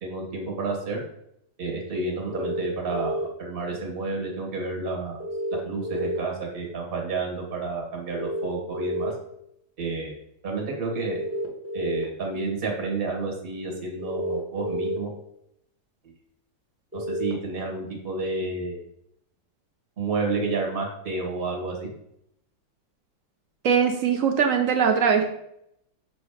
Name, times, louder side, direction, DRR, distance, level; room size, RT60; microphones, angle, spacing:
voice 1, 0.0-1.0 1.6-5.2 5.5-9.1 9.8-11.2 11.7-15.1 16.0-16.1 16.9-18.8 20.0-21.9, right 3 dB, 35° right, 0 dB, 1.4 m, -30 dB
sound 1, 2.3-3.2 5.2-6.2 8.1-9.1 11.1-12.0 14.0-15.0 16.9-17.3, left 1 dB, 15° right, 0.5 m, -30 dB
voice 2, 23.6-25.2, right 7 dB, 70° right, 5 dB, 0.7 m, -21 dB
6.3 x 3.1 x 4.8 m, 0.75 s
omnidirectional pair, 1.9 m